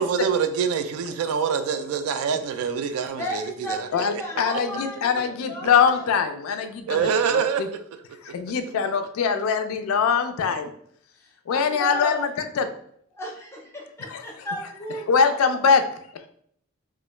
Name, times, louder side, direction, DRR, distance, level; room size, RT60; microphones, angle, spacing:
voice 1, 0.0-3.9 6.9-7.6, right 6 dB, 90° right, 0.3 m, -25 dB
voice 2, 3.2-6.0 11.5-12.2 13.1-15.1, equal, 10° left, 0.5 m, -34 dB
voice 3, 3.9-7.7 8.2-10.7 11.5-12.7 14.1-14.5 15.1-15.8, left 6 dB, 75° left, 0.3 m, -23 dB
2.3 x 2.1 x 3.0 m
head